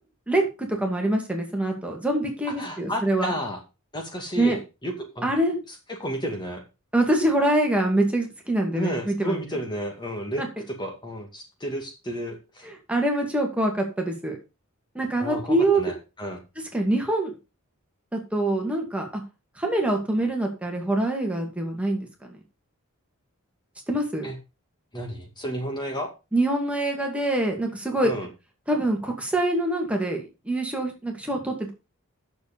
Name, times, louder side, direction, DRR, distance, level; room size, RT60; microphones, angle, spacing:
voice 1, 0.3-3.3 4.4-4.6 5.2-5.6 6.9-9.4 10.4-10.5 12.6-14.4 14.9-15.8 16.7-17.3 18.1-19.2 19.6-22.3 23.9-24.3 26.3-28.1 28.7-31.7, right 1 dB, 5° right, 1 dB, 2.2 m, -25 dB
voice 2, 2.5-3.6 3.9-5.3 5.7-6.6 8.7-12.7 15.2-16.4 24.2-24.4 24.9-26.1 28.0-28.3, equal, 20° left, 2 dB, 2.1 m, -32 dB
10.0 x 7.0 x 5.2 m, 0.28 s
head